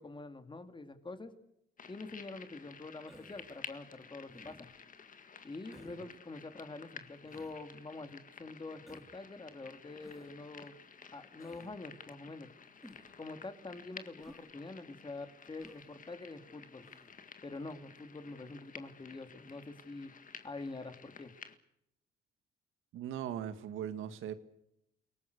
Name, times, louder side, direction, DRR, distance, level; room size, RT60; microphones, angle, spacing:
voice 1, 0.0-1.3 1.9-4.7 5.4-10.8 11.1-12.5 13.2-16.9 17.4-20.1 20.4-21.3, left 3 dB, 25° left, 8 dB, 2.7 m, -46 dB
sound 1, 1.8-21.6, left 6 dB, 40° left, 1.9 m, -53 dB
Human voice, 3.1-3.6 4.3-4.8 5.7-6.0 7.3-7.6 8.9-9.2 10.0-10.3 11.4-11.7 12.8-13.2 14.2-14.5 15.6-15.9 16.8-17.1, equal, ahead, 3.6 m, -56 dB
voice 2, 22.9-24.3, right 10 dB, 90° right, 11 dB, 1.9 m, -39 dB
29.0 x 18.5 x 6.8 m, 0.79 s
cardioid pair, 90°, 20 cm